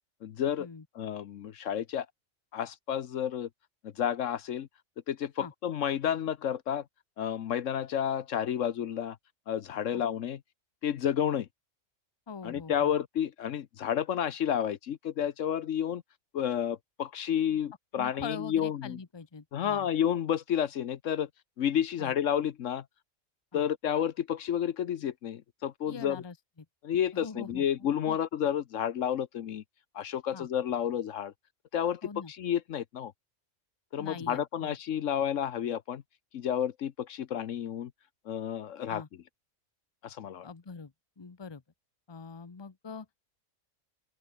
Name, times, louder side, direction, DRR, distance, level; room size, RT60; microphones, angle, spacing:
voice 1, 0.2-0.7 0.9-2.1 2.5-3.5 3.8-4.7 5.1-6.8 7.2-9.2 9.5-10.4 10.8-11.5 12.4-16.0 16.3-19.0 19.5-21.3 21.6-22.8 23.5-26.2 26.8-29.6 29.9-31.3 31.7-33.1 33.9-36.0 36.3-37.9 38.3-39.0 40.0-40.5, left 9 dB, 70° left, 1.1 m, -31 dB
voice 2, 12.3-12.9 18.0-19.9 22.0-22.1 23.5-23.7 25.9-26.7 27.1-28.2 30.3-30.5 32.0-32.3 34.0-34.8 38.9-39.1 40.4-41.6 42.1-43.1, left 5 dB, 20° left, 0.9 m, -43 dB
open air
omnidirectional pair, 1.4 m